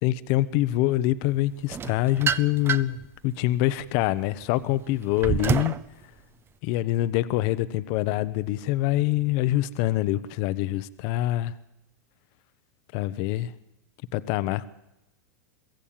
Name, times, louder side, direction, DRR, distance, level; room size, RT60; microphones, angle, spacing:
voice 1, 0.0-3.0 3.2-5.8 6.6-11.6 12.9-13.5 14.1-14.7, left 15 dB, 50° left, 14 dB, 0.9 m, -25 dB
sound 1, 1.7-3.0 3.6-5.8, right 7 dB, 25° right, 0.8 m, -28 dB
22.5 x 15.5 x 8.8 m, 0.94 s
hypercardioid pair, 120°, 10 cm